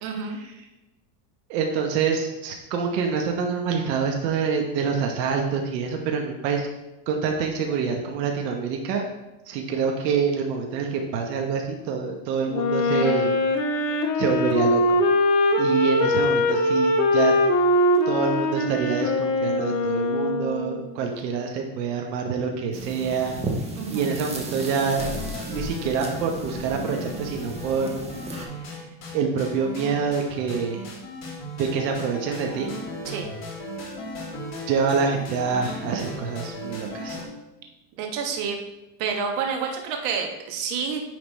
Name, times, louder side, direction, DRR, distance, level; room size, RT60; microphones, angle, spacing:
voice 1, 0.0-0.4 23.7-24.1 33.0-33.3 38.0-38.6 39.0-41.0, right 6 dB, 60° right, 3 dB, 1.3 m, -29 dB
voice 2, 1.5-6.7 7.1-9.1 9.5-13.3 13.9-15.0 15.6-17.3 18.1-23.4 23.9-28.1 29.1-30.8 31.6-32.8 34.7-37.2, right 5 dB, 85° right, 2 dB, 1.1 m, -26 dB
Wind instrument woodwind instrument, 12.5-20.8, left 1 dB, 75° left, 1.1 m, -22 dB
sound 1, 22.7-28.5, right 2 dB, 15° right, 0.7 m, -35 dB
sound 2, 24.9-37.3, left 1 dB, 35° left, 2.1 m, -36 dB
9.4 x 3.4 x 4.1 m, 0.99 s
supercardioid pair, 155°, 48 cm